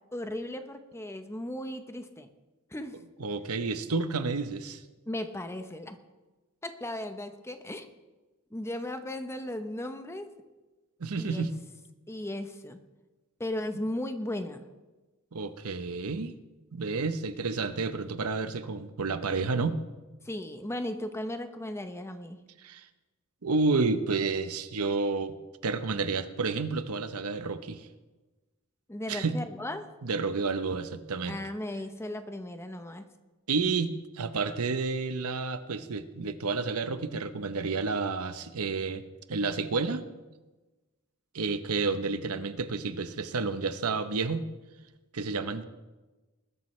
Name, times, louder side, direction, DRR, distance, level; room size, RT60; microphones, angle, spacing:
voice 1, 0.1-2.3 2.7-3.0 5.1-6.0 6.6-7.9 8.5-10.3 11.2-11.5 12.1-12.8 13.4-14.6 20.2-22.4 28.9-29.9 31.2-33.1, left 1 dB, 10° left, 8 dB, 0.8 m, -36 dB
voice 2, 3.2-4.8 11.0-11.6 15.3-16.3 16.7-19.8 22.6-22.9 23.4-25.3 25.6-27.9 29.1-29.4 30.0-31.4 33.5-39.0 39.3-40.0 41.3-44.5 45.1-45.6, right 4 dB, 80° right, 11 dB, 0.8 m, -30 dB
20.5 x 12.5 x 3.2 m, 1.2 s
head